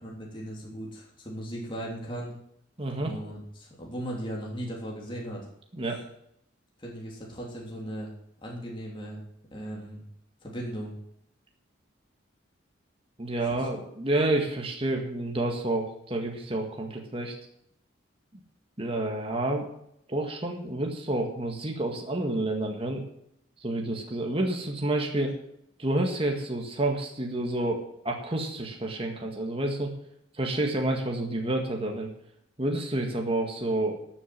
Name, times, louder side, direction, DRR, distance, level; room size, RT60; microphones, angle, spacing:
voice 1, 0.0-2.3 3.0-5.5 6.8-8.1 8.4-9.2 9.5-10.0 10.4-10.9 13.5-13.8, right 1 dB, 25° left, -3 dB, 3.0 m, -37 dB
voice 2, 2.8-3.2 5.7-6.0 13.2-17.3 18.3-18.4 18.8-19.7 20.1-23.0 23.6-25.4 25.8-29.9 30.3-32.1 32.6-34.0, right 1 dB, 30° right, 1 dB, 1.8 m, -29 dB
12.5 x 7.5 x 7.5 m, 0.74 s
head